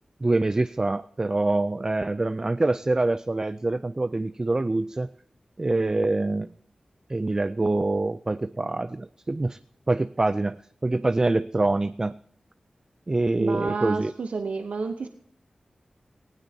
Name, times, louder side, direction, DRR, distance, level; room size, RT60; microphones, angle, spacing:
voice 1, 0.2-5.1 5.6-6.5 7.1-9.6 9.9-10.6 10.8-12.2 13.1-14.1, right 2 dB, 30° right, 12 dB, 0.4 m, -25 dB
voice 2, 13.4-15.1, right 4 dB, 90° right, 7 dB, 0.8 m, -30 dB
18.5 x 17.0 x 2.8 m, 0.71 s
wide cardioid pair, 85°, 2 cm